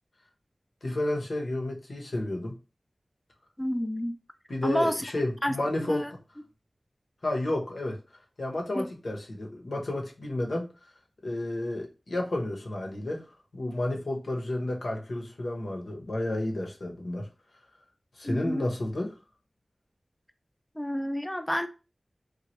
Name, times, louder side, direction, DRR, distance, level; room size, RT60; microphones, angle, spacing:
voice 1, 0.8-2.6 4.5-6.1 7.2-8.0 8.4-10.7 11.2-13.2 13.5-17.3 18.2-19.2, left 1 dB, 75° left, 0.8 m, -31 dB
voice 2, 3.6-4.1 4.6-5.0 5.4-5.6 5.9-6.1 8.8-8.9 18.2-18.7 20.8-21.7, equal, 10° left, 0.4 m, -29 dB
3.1 x 2.2 x 2.9 m
wide cardioid pair, 50°, 0 cm